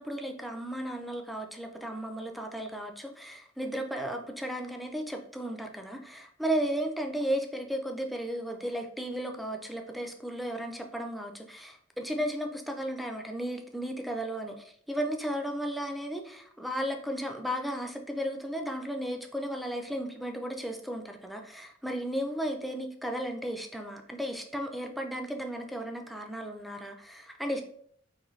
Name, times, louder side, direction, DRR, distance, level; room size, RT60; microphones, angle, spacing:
voice 1, 0.0-27.6, equal, ahead, 3 dB, 0.4 m, -34 dB
4.0 x 2.6 x 3.1 m, 0.63 s
head